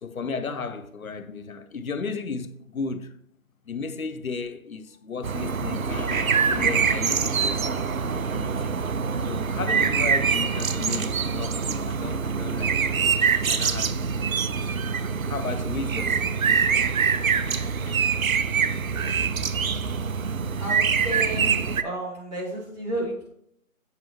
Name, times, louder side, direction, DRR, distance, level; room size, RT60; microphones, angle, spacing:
voice 1, 0.0-3.1 3.7-8.7 9.3-14.1 15.3-16.3 17.9-18.0, left 5 dB, 85° left, 0.7 m, -34 dB
sound 1, 5.2-21.8, right 6 dB, 80° right, 0.6 m, -24 dB
voice 2, 18.9-19.3 20.6-23.3, right 1 dB, 30° right, 2.7 m, -33 dB
8.1 x 5.8 x 2.9 m
figure-of-eight pair, 165°, 41 cm